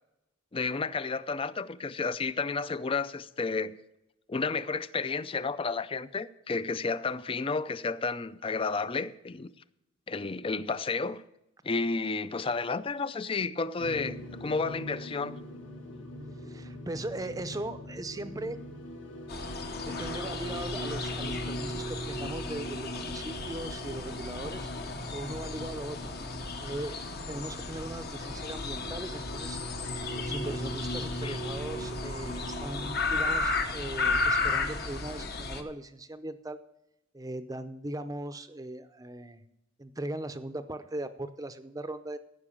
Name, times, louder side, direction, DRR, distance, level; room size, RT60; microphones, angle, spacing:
voice 1, 0.5-3.8 4.3-9.5 10.1-11.2 11.6-15.4 31.2-31.4, left 4 dB, 25° left, 0.4 m, -31 dB
sound 1, 13.8-33.0, equal, 65° left, 1.5 m, -41 dB
voice 2, 16.4-18.6 19.8-24.7 25.1-26.1 26.6-29.6 30.2-36.6 37.1-39.4 39.8-42.2, right 1 dB, 15° right, 0.6 m, -39 dB
sound 2, 19.3-35.6, left 3 dB, 50° left, 1.0 m, -34 dB
15.0 x 5.8 x 7.1 m
head